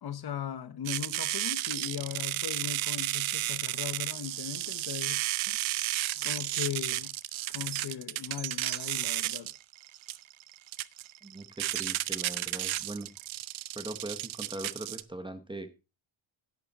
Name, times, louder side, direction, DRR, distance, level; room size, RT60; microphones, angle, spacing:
voice 1, 0.0-5.7 6.2-7.1 7.5-9.5, left 9 dB, 50° left, 1.1 m, -38 dB
sound 1, 0.9-15.0, right 15 dB, 70° right, 0.7 m, -33 dB
voice 2, 11.2-13.1 13.7-15.7, right 1 dB, 10° right, 0.9 m, -41 dB
11.0 x 9.9 x 4.1 m
wide cardioid pair, 175°, 49 cm